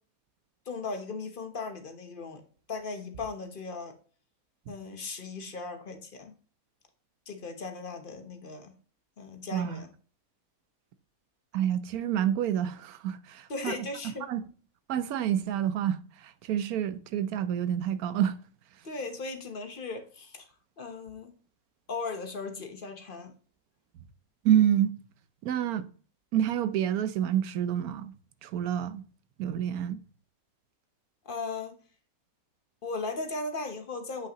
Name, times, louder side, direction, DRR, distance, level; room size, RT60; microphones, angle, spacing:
voice 1, 0.7-2.4 2.7-3.9 4.7-6.3 7.3-8.7 9.2-9.9 13.5-14.3 18.8-20.5 20.8-21.3 21.9-23.3 31.2-31.8 32.8-34.3, left 3 dB, 40° left, 1.1 m, -37 dB
voice 2, 9.5-9.8 11.5-13.9 14.3-14.4 14.9-18.4 24.4-24.9 25.4-25.9 26.3-28.1 28.4-29.0 29.4-30.0, right 10 dB, 85° right, 1.1 m, -28 dB
8.3 x 5.5 x 2.9 m
omnidirectional pair, 1.5 m